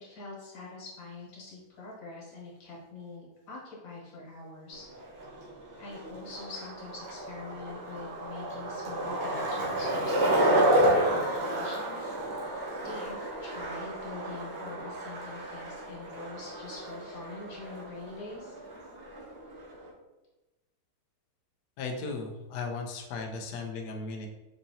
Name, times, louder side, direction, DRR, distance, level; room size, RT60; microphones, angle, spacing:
voice 1, 0.0-4.8 5.8-12.6 12.8-18.6, left 3 dB, 65° left, -5 dB, 1.9 m, -44 dB
Skateboard, 4.7-19.9, right 1 dB, 65° right, 1.5 m, -31 dB
voice 2, 21.8-24.3, left 4 dB, 85° left, 2 dB, 0.9 m, -36 dB
4.8 x 2.8 x 2.7 m, 1.1 s
omnidirectional pair, 2.3 m